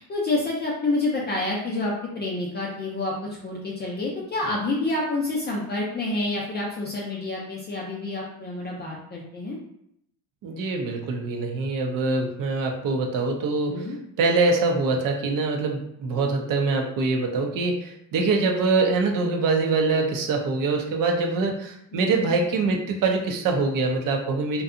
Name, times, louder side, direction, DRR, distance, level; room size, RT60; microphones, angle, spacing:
voice 1, 0.0-9.6 13.7-14.0 21.9-22.2, left 2 dB, 25° left, -3 dB, 0.4 m, -28 dB
voice 2, 10.4-13.9 14.2-24.6, right 3 dB, 50° right, 3 dB, 0.5 m, -24 dB
2.6 x 2.2 x 2.4 m, 0.74 s
cardioid pair, 120°, 42 cm